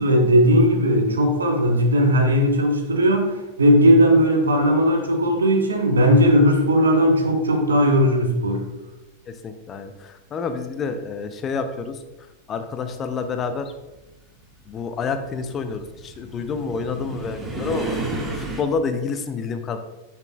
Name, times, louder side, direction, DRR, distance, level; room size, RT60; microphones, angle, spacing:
voice 1, 0.0-8.6, equal, 70° right, 3 dB, 1.2 m, -17 dB
voice 2, 9.3-12.0 12.5-13.7 14.7-18.0 18.4-19.8, left 5 dB, 25° left, 8 dB, 0.6 m, -28 dB
sound 1, 12.7-18.6, right 2 dB, 10° right, 1.2 m, -33 dB
8.9 x 5.9 x 2.3 m, 1.0 s
figure-of-eight pair, 90°, 0 cm